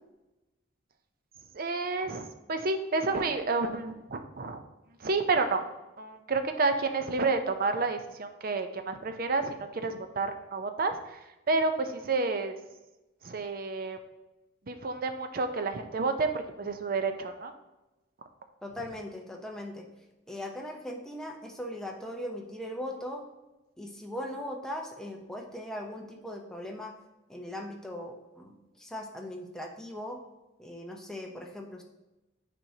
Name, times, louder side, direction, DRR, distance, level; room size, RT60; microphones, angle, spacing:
voice 1, 1.5-4.6 5.0-5.6 6.0-12.6 13.2-14.0 14.7-17.5, right 3 dB, 45° right, 7 dB, 0.5 m, -30 dB
voice 2, 18.6-19.8 20.3-23.2 23.8-26.9 27.3-30.2 30.6-31.8, left 1 dB, 5° left, 0 dB, 0.6 m, -39 dB
8.9 x 4.2 x 2.8 m, 1.0 s
head